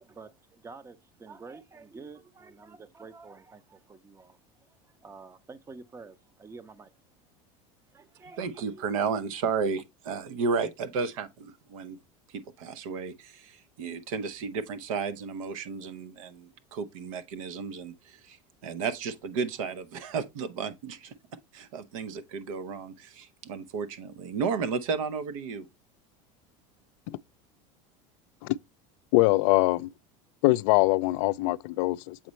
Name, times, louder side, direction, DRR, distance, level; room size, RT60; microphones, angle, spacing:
voice 1, 0.0-4.4 5.0-6.9 7.9-8.8, right 4 dB, 15° right, 0.6 m, -48 dB
voice 2, 8.4-12.0 12.3-18.4 18.6-21.1 21.5-25.7, right 5 dB, 80° right, 0.9 m, -33 dB
voice 3, 29.1-29.9 30.4-32.2, left 20 dB, 70° left, 0.4 m, -23 dB
7.6 x 4.2 x 3.1 m
supercardioid pair, 110°, 17 cm